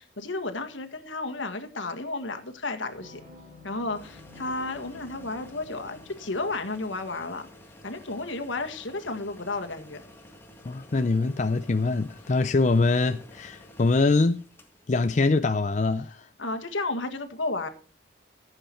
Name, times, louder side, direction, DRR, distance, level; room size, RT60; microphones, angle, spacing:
voice 1, 0.0-3.2 3.6-7.5 7.8-10.0 16.4-17.7, left 2 dB, 80° left, 1.7 m, -32 dB
sound 1, 2.9-6.1, left 2 dB, 35° right, 3.5 m, -50 dB
sound 2, 3.9-15.1, left 1 dB, 10° left, 1.8 m, -51 dB
voice 2, 10.7-14.4 14.9-16.3, left 3 dB, 35° left, 0.4 m, -23 dB
16.0 x 7.9 x 4.5 m
head